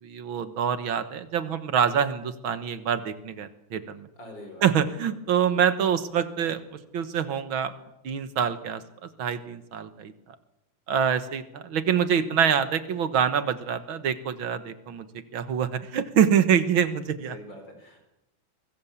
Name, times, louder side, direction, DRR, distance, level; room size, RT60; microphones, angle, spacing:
voice 1, 0.0-4.1 4.6-6.6 6.9-7.7 8.0-10.4 10.9-15.1 15.3-17.4, right 8 dB, 75° right, 11 dB, 2.2 m, -25 dB
voice 2, 4.1-4.7 13.9-14.1 16.7-16.8 17.2-18.0, left 1 dB, 60° left, 5 dB, 5.1 m, -44 dB
24.5 x 21.5 x 7.3 m, 0.88 s
omnidirectional pair, 2.2 m